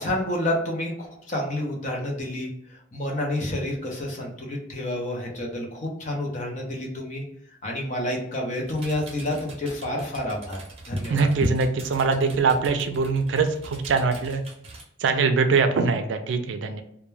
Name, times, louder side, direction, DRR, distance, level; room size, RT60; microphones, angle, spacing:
voice 1, 0.0-2.5 2.9-7.2 7.6-10.6 10.9-11.3, left 1 dB, 40° left, 0 dB, 0.6 m, -29 dB
sound 1, 8.6-14.8, right 2 dB, 35° right, 0.7 m, -43 dB
voice 2, 11.1-14.4 15.0-16.8, right 4 dB, 75° right, 7 dB, 0.4 m, -22 dB
2.2 x 2.1 x 3.1 m, 0.75 s
head